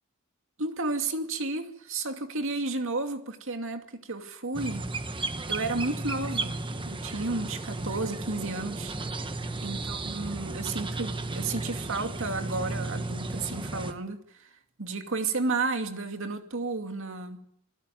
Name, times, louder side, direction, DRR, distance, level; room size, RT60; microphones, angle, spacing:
voice 1, 0.6-4.9 5.5-8.9 9.6-14.5 14.8-17.4, right 3 dB, 65° right, 2.5 m, -32 dB
sound 1, 4.5-13.9, right 2 dB, 25° right, 1.3 m, -34 dB
25.5 x 16.0 x 9.3 m
head